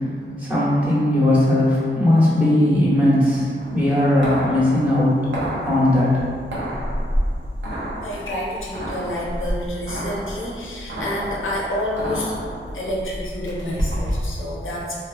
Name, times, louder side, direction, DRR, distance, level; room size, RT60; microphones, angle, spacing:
voice 1, 0.0-5.1 5.6-6.2, left 1 dB, 5° right, -10 dB, 0.9 m, -18 dB
sound 1, 3.6-14.3, equal, 65° right, 0.6 m, -29 dB
voice 2, 8.0-12.3 12.7-15.0, left 1 dB, 85° left, -4 dB, 0.5 m, -28 dB
2.7 x 2.1 x 2.4 m, 2.2 s
wide cardioid pair, 80°, 20 cm